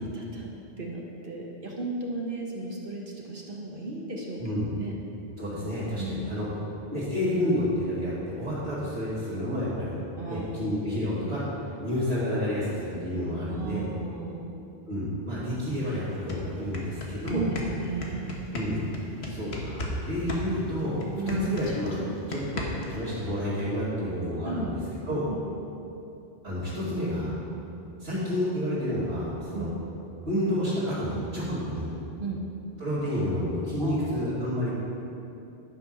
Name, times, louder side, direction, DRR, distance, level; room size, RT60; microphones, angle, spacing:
voice 1, 0.1-0.5 0.8-4.4 4.8-4.9 6.0-6.2 6.6-6.7 10.2-10.7 13.5-14.5 17.3-18.3 21.2-21.4 24.4-24.7 25.3-25.4 29.5-29.7 32.2-32.4 33.8-34.2, right 3 dB, 50° right, -2 dB, 1.2 m, -35 dB
voice 2, 4.4-4.7 5.4-6.5 6.9-10.0 10.3-11.4 11.8-13.8 14.9-17.4 18.5-18.8 19.3-22.0 22.3-24.7 25.1-25.3 26.4-27.3 28.0-29.7 30.2-31.9 32.8-34.7, equal, 70° right, -14 dB, 3.0 m, -29 dB
sound 1, 15.7-15.8 16.1-20.0 20.3-23.0, left 2 dB, 65° left, 1.5 m, -35 dB
11.5 x 6.0 x 5.7 m, 2.8 s
omnidirectional pair, 1.1 m